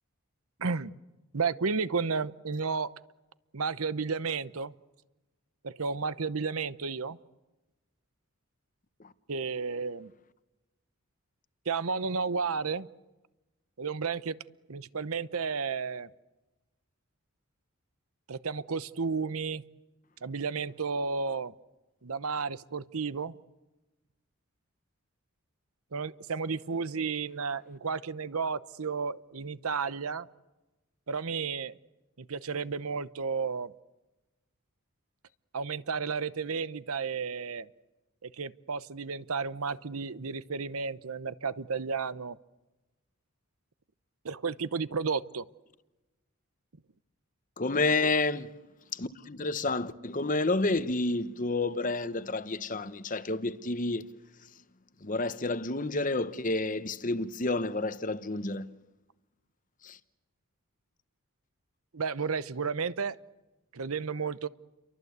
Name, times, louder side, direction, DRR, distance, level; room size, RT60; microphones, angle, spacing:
voice 1, 0.6-0.9 1.3-2.9 3.5-4.7 5.6-7.2 9.3-10.1 11.7-12.9 13.8-14.4 14.7-16.1 18.3-19.6 20.2-21.5 22.0-23.3 25.9-30.3 31.1-31.8 32.2-33.7 35.5-37.7 38.2-42.4 44.2-45.5 48.0-48.1 61.9-63.2 63.7-64.5, right 5 dB, 75° right, 0.8 m, -32 dB
voice 2, 47.6-48.5 48.9-54.1 55.0-58.8 59.8-60.0, left 2 dB, 35° left, 1.0 m, -30 dB
30.0 x 23.5 x 8.2 m
head